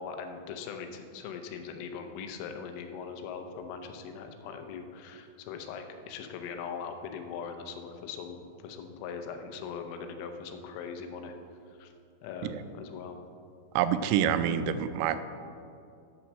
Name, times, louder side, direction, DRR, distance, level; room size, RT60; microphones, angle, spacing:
voice 1, 0.0-11.4 11.7-11.9 12.2-13.2, left 6 dB, 90° left, 6 dB, 3.4 m, -40 dB
voice 2, 13.8-15.2, right 9 dB, 85° right, 11 dB, 3.0 m, -27 dB
9.3 x 5.9 x 6.5 m, 2.4 s
omnidirectional pair, 5.6 m